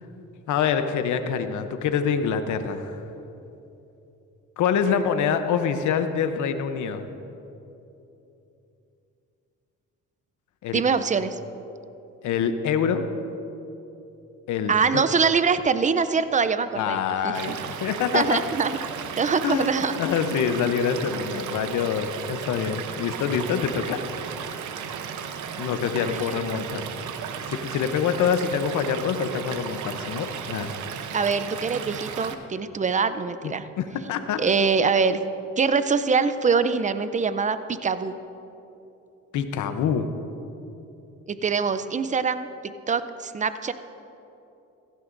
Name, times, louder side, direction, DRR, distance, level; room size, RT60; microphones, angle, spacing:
voice 1, 0.5-3.0 4.6-7.0 10.6-10.8 12.2-13.0 14.5-15.0 16.7-18.4 19.4-24.0 25.6-26.9 27.5-30.7 33.4-34.4 39.3-40.1, left 7 dB, 75° left, 8 dB, 0.8 m, -26 dB
voice 2, 10.7-11.4 14.7-17.0 17.2-17.6 18.1-18.7 19.2-19.9 26.0-26.2 31.1-33.6 34.4-35.2 35.6-38.1 41.3-43.7, right 5 dB, 25° right, 12 dB, 0.5 m, -24 dB
Stream / Liquid, 17.3-32.3, right 7 dB, 75° right, 0.8 m, -35 dB
16.0 x 14.0 x 2.6 m, 2.9 s
cardioid pair, 90°, 30 cm